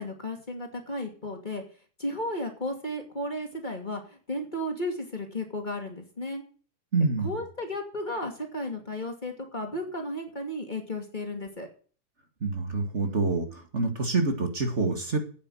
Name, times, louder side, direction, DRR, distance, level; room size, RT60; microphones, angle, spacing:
voice 1, 0.0-1.6 2.0-6.4 7.2-11.7, left 1 dB, 30° left, 3 dB, 2.6 m, -34 dB
voice 2, 6.9-7.4 12.4-15.2, right 3 dB, 45° right, 4 dB, 2.4 m, -27 dB
12.5 x 8.9 x 6.4 m, 0.41 s
omnidirectional pair, 1.6 m